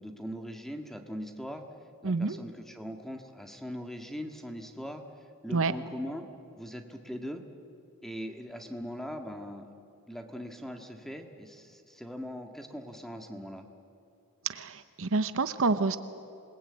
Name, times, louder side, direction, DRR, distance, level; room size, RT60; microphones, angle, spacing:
voice 1, 0.0-1.6 2.0-5.0 5.4-6.3 6.6-7.4 8.0-9.7 10.1-13.7, equal, ahead, 5 dB, 1.8 m, -40 dB
voice 2, 2.0-2.4 5.5-5.7 14.5-16.0, right 3 dB, 65° right, 12 dB, 0.8 m, -28 dB
27.0 x 20.0 x 8.7 m, 2.6 s
head